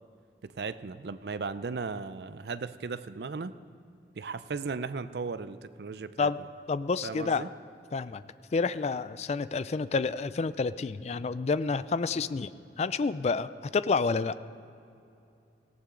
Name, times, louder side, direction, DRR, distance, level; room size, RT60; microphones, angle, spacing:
voice 1, 0.4-3.6 4.2-6.3 7.0-7.5, right 4 dB, 65° right, 13 dB, 0.5 m, -36 dB
voice 2, 6.7-7.4 7.9-8.2 8.5-12.5 12.8-14.3, left 4 dB, 40° left, 15 dB, 0.3 m, -29 dB
18.0 x 16.0 x 3.8 m, 2.6 s
head